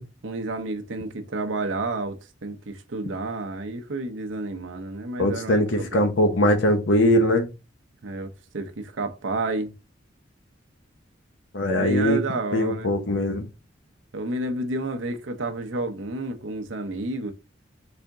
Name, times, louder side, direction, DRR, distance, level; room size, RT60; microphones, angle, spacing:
voice 1, 0.2-6.1 8.0-9.7 11.7-13.0 14.1-17.3, right 2 dB, 80° right, 0.7 m, -30 dB
voice 2, 5.2-7.5 11.5-12.2 12.5-13.5, left 1 dB, 75° left, 0.8 m, -21 dB
4.2 x 3.5 x 3.6 m
head